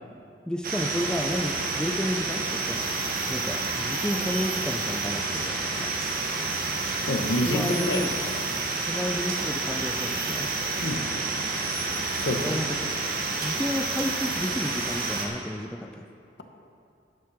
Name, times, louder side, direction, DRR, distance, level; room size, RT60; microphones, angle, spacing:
voice 1, 0.5-2.9 3.3-6.0 7.5-8.1 8.9-10.5 12.4-12.9 13.4-16.0, left 1 dB, 5° left, 5 dB, 0.3 m, -31 dB
sound 1, 0.6-15.3, right 3 dB, 55° right, 1.2 m, -29 dB
voice 2, 7.1-8.0 10.8-11.0 12.2-12.5, left 1 dB, 75° left, 5 dB, 0.9 m, -27 dB
9.0 x 7.5 x 6.2 m, 2.6 s
head